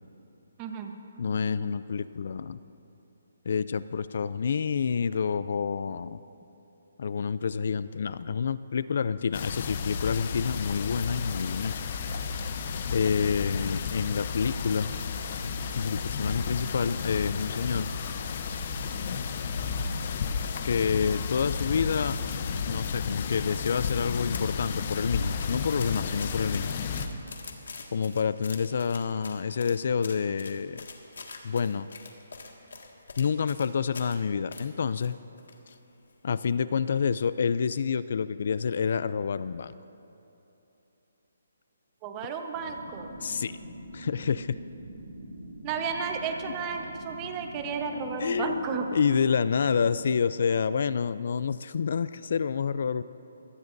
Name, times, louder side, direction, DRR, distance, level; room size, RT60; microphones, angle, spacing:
voice 1, 0.6-1.0 42.0-43.2 45.6-48.9, right 5 dB, 20° right, 4 dB, 1.0 m, -33 dB
voice 2, 1.2-2.6 3.5-6.2 7.0-11.8 12.9-14.9 15.7-17.9 20.6-22.2 22.7-26.7 27.9-30.9 31.4-31.9 33.2-35.2 36.2-39.7 43.2-43.6 43.9-44.6 48.2-48.7 48.9-53.0, left 6 dB, 55° left, 15 dB, 0.3 m, -28 dB
sound 1, 9.3-27.1, left 5 dB, 40° left, 0.8 m, -32 dB
sound 2, 18.5-21.0 21.3-22.1 22.4-22.8 23.1-23.2 23.4-24.1 24.3-34.2 34.5-35.8 36.1-36.2 36.8-37.2 37.6-37.8, left 4 dB, 75° left, 1.9 m, -46 dB
sound 3, 42.6-50.0, right 1 dB, 50° right, 2.4 m, -44 dB
24.5 x 18.5 x 2.7 m, 2.9 s
hypercardioid pair, 165°, 0 cm